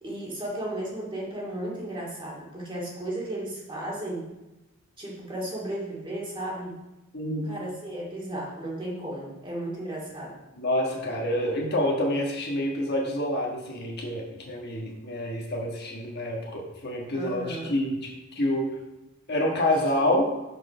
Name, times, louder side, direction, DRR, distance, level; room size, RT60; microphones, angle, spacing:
voice 1, 0.0-4.3 5.0-6.8 7.4-10.4 17.1-17.8, right 1 dB, 25° right, -5 dB, 2.3 m, -34 dB
voice 2, 7.1-7.5 10.6-18.1 18.3-18.7 19.3-20.3, left 1 dB, 50° left, -1 dB, 1.5 m, -27 dB
6.3 x 6.1 x 5.5 m, 1.0 s
head